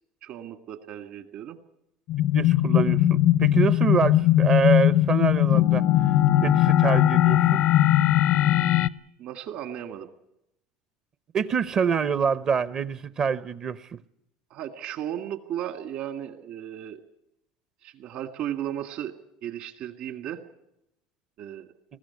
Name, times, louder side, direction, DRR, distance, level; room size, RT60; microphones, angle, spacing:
voice 1, 0.2-1.6 9.2-10.1 14.5-17.0 17.8-19.1 19.4-20.4 21.4-21.7, right 10 dB, 60° right, 1.9 m, -35 dB
sound 1, 2.1-8.9, left 13 dB, 65° left, 0.7 m, -20 dB
voice 2, 2.3-5.8 6.4-7.6 11.3-14.0, right 6 dB, 40° right, 0.7 m, -26 dB
20.5 x 15.0 x 9.5 m
supercardioid pair, 100°, 2 cm